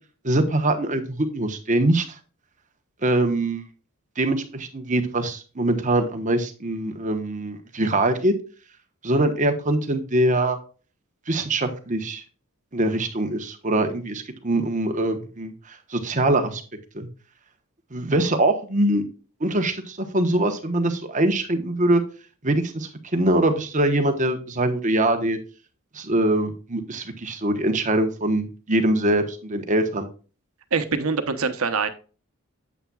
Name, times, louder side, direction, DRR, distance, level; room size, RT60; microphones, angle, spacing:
voice 1, 0.2-2.2 3.0-3.6 4.2-8.3 9.0-10.6 11.3-12.2 12.7-16.6 16.9-17.1 17.9-19.1 19.4-22.0 22.4-25.4 25.9-30.1, right 1 dB, 35° right, 7 dB, 1.2 m, -23 dB
voice 2, 30.7-31.9, right 5 dB, 80° right, 9 dB, 1.0 m, -24 dB
8.8 x 8.2 x 2.4 m, 0.36 s
head